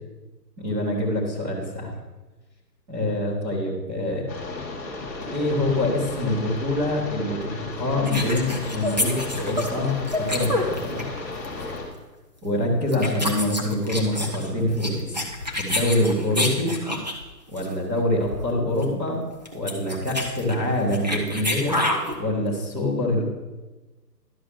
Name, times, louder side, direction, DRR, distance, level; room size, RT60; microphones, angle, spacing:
voice 1, 0.6-1.9 2.9-4.3 5.3-7.5 7.8-11.1 12.4-15.1 15.6-16.7 17.5-19.2 19.5-21.8 22.2-23.2, left 1 dB, 10° right, -7 dB, 1.2 m, -25 dB
sound 1, 4.3-11.8, left 3 dB, 10° left, 0.7 m, -34 dB
sound 2, 8.0-11.2 11.4-11.7 12.4-12.6 12.9-17.2 17.6-17.7 18.0-18.1 18.2-18.5 18.8-18.9 19.3-22.2, left 1 dB, 30° right, 0.5 m, -28 dB
11.5 x 4.7 x 6.2 m, 1.2 s
hypercardioid pair, 160°, 50 cm